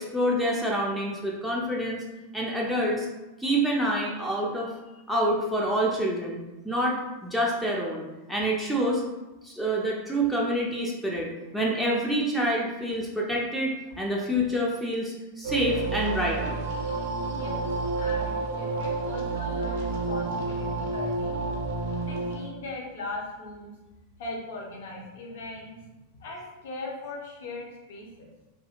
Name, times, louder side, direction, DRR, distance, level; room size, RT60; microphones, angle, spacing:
voice 1, 0.0-2.0 2.3-3.1 3.4-4.7 5.1-9.0 9.4-11.3 11.5-16.6, equal, ahead, -3 dB, 0.4 m, -27 dB
sound 1, 15.4-22.4, right 3 dB, 50° right, 0.5 m, -30 dB
voice 2, 17.3-17.7 18.0-21.7 22.0-23.7 24.2-25.8 26.1-28.3, left 2 dB, 55° left, -2 dB, 0.6 m, -39 dB
2.7 x 2.4 x 2.4 m, 1.1 s
figure-of-eight pair, 90°, 0 cm